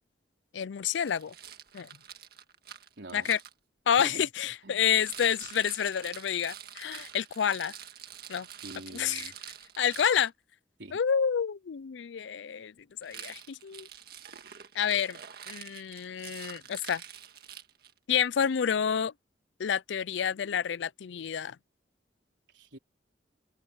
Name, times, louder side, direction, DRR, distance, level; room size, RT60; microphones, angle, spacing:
voice 1, 0.5-1.3 1.7-1.9 3.1-3.4 3.9-7.7 8.3-8.5 8.9-9.3 9.8-10.3 10.9-12.7 13.0-13.9 14.7-15.2 15.5-17.0 18.1-19.1 19.6-21.6, left 8 dB, 80° left, 0.4 m, -29 dB
Rattle, 0.9-3.5 4.9-10.3 13.0-18.0, right 9 dB, 55° right, 1.8 m, -46 dB
voice 2, 3.0-3.3 4.0-4.3 4.6-4.9 8.6-9.3 10.8-11.0 22.5-22.8, right 1 dB, 80° right, 4.0 m, -45 dB
open air
head